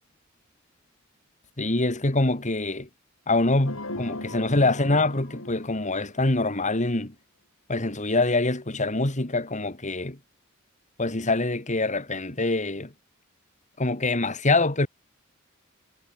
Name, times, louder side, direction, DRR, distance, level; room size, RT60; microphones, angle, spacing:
voice 1, 1.6-2.9 3.3-7.1 7.7-10.2 11.0-12.9 13.8-14.9, left 2 dB, 35° left, 2.4 m, -25 dB
sound 1, 3.6-6.5, left 2 dB, 80° left, 6.2 m, -38 dB
head